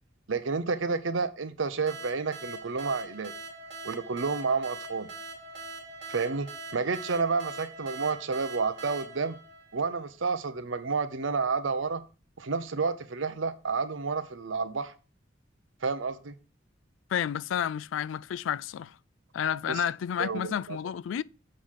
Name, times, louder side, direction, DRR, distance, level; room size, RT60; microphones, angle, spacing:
voice 1, 0.3-3.3 3.8-5.1 6.1-9.4 9.7-12.0 12.4-14.9 15.8-16.3 19.7-19.8 20.2-20.8, right 4 dB, 85° right, 0.7 m, -30 dB
sound 1, 1.9-10.3, right 2 dB, 65° right, 2.0 m, -43 dB
voice 2, 17.1-19.0 19.3-21.2, left 9 dB, 85° left, 0.3 m, -30 dB
7.4 x 3.9 x 6.5 m
head